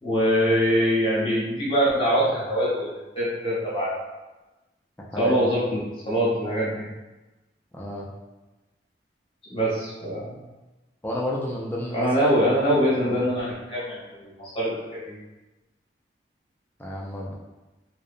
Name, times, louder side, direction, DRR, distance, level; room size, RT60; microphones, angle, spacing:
voice 1, 0.0-4.0 5.2-6.9 9.5-10.4 11.9-15.2, equal, 30° left, -8 dB, 0.8 m, -24 dB
voice 2, 5.0-5.4 7.7-8.1 11.0-12.1 13.0-13.2 16.8-17.3, left 1 dB, 10° left, -3 dB, 0.3 m, -31 dB
2.7 x 2.0 x 2.5 m, 1.1 s
head